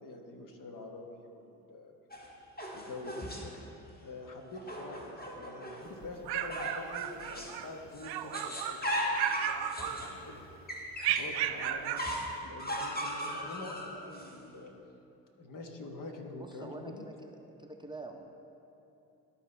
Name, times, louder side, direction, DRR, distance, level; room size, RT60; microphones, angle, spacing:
voice 1, 0.0-1.9 2.7-3.2 4.0-10.5 11.1-12.0 12.4-14.7 15.4-17.1, left 2 dB, 50° left, 3 dB, 1.2 m, -45 dB
sound 1, 2.1-3.6 4.5-5.9 6.5-7.6 7.9-11.4 12.0-14.3, equal, 20° left, 1.5 m, -38 dB
sound 2, 6.0-7.7 8.0-8.8 9.1-10.4 11.0-12.1, right 11 dB, 65° right, 0.5 m, -34 dB
voice 2, 16.4-17.3 17.6-18.3, right 2 dB, 10° right, 2 dB, 0.6 m, -46 dB
12.5 x 4.2 x 3.3 m, 2.9 s
hypercardioid pair, 55°, 42 cm